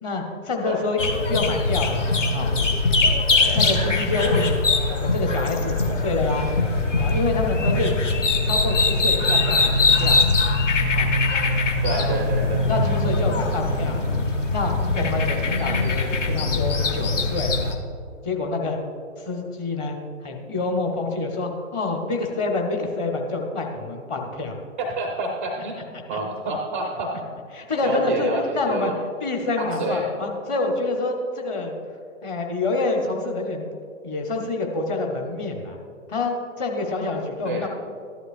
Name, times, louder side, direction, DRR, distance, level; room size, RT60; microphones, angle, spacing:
voice 1, 0.0-2.1 2.3-2.5 3.5-6.5 7.0-8.0 8.4-10.2 10.9-11.1 11.9-12.1 12.6-14.0 14.5-17.5 18.2-18.8 19.2-20.0 20.2-24.5 26.1-26.2 27.5-28.9 29.2-31.7 32.2-33.7 34.0-35.8 36.1-37.7, left 3 dB, 20° left, 2 dB, 0.9 m, -27 dB
sound 1, 1.0-17.7, left 3 dB, 65° left, 1.4 m, -22 dB
voice 2, 11.8-12.8 24.8-25.8 26.1-27.2 27.8-28.9 29.6-30.0 37.5-37.7, right 2 dB, 10° right, 2 dB, 0.4 m, -28 dB
13.0 x 11.0 x 2.5 m, 2.4 s
figure-of-eight pair, 130°, 40 cm